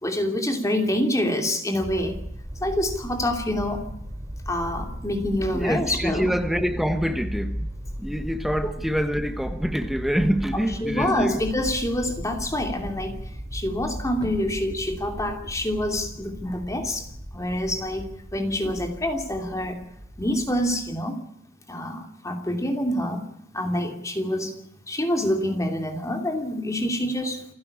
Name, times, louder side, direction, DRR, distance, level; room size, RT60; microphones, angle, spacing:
voice 1, 0.0-2.2 2.6-3.9 4.5-6.3 8.6-8.7 10.5-13.2 13.5-17.1 17.3-19.8 20.2-21.2 21.7-23.3 23.5-24.5 24.9-27.4, left 1 dB, 15° left, 2.8 m, -26 dB
sound 1, 1.8-20.9, equal, 20° right, 2.8 m, -36 dB
voice 2, 5.5-7.7 8.0-11.4, equal, ahead, 1.2 m, -26 dB
28.5 x 11.5 x 9.8 m
head